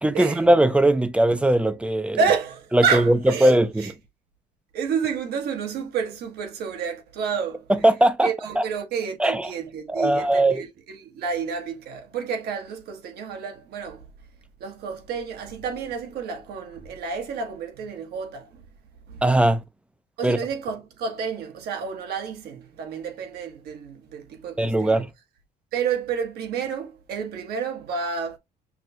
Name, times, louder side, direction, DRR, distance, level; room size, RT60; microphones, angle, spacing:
voice 1, 0.0-2.2 2.7-3.9 7.7-8.6 9.2-9.5 9.9-10.6 19.2-19.6 20.2-20.4 24.6-25.1, right 1 dB, 5° right, 0.4 m, -20 dB
voice 2, 2.2-3.9 4.7-7.7 8.2-10.7 11.0-14.0 14.6-18.5 19.1-19.2 20.2-25.0 25.7-28.4, right 6 dB, 70° right, 1.1 m, -29 dB
6.0 x 2.2 x 2.6 m
cardioid pair, 110°, 17 cm